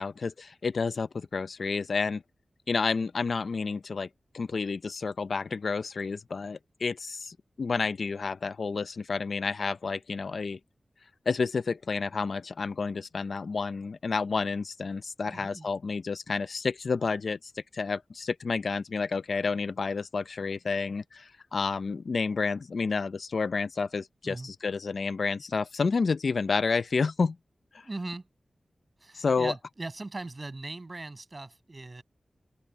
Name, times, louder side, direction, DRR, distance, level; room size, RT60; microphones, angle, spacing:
voice 1, 0.0-2.2 2.7-4.1 4.3-10.6 11.3-27.4 27.7-27.9 29.1-29.5, left 4 dB, 65° left, 0.5 m, -30 dB
voice 2, 15.2-15.7 24.2-24.5 27.8-28.3 29.0-32.0, right 2 dB, 30° right, 6.5 m, -39 dB
wide cardioid pair, 120°, 0 cm